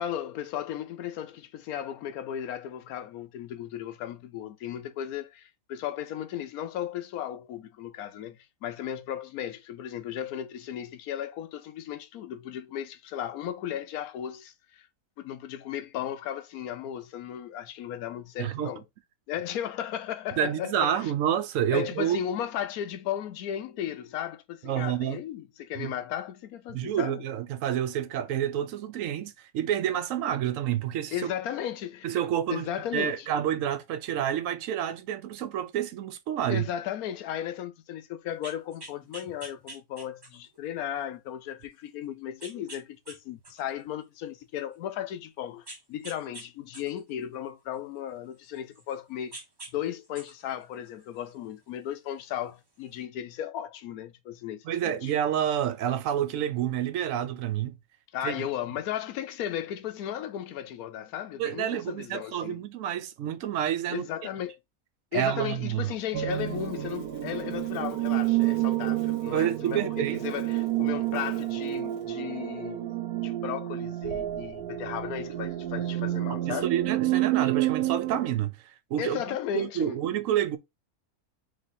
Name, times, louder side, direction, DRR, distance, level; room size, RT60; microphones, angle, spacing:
voice 1, 0.0-14.9 15.2-18.8 19.3-21.1 21.7-27.2 31.1-32.1 32.5-33.3 36.5-49.4 49.7-55.1 58.1-62.6 63.9-64.6 65.1-73.0 73.2-76.7 79.0-80.0, left 10 dB, 85° left, 1.1 m, -35 dB
voice 2, 18.4-18.7 20.4-22.2 24.6-25.2 25.8-25.9 26.7-31.3 32.0-32.7 32.9-36.7 54.6-57.8 58.2-58.5 61.4-64.1 65.1-65.9 69.3-70.2 76.3-80.6, right 10 dB, 70° right, 0.9 m, -29 dB
sound 1, 38.3-40.6 41.1-41.2 42.4-43.2 43.4-44.8 45.7-46.5 46.7-48.9 49.3-49.7 50.0-51.5 52.5-52.6, right 2 dB, 20° right, 0.8 m, -46 dB
sound 2, 66.1-78.3, right 15 dB, 90° right, 1.1 m, -29 dB
sound 3, 66.3-72.1, left 2 dB, 30° left, 0.8 m, -50 dB
3.3 x 3.2 x 3.9 m
omnidirectional pair, 1.6 m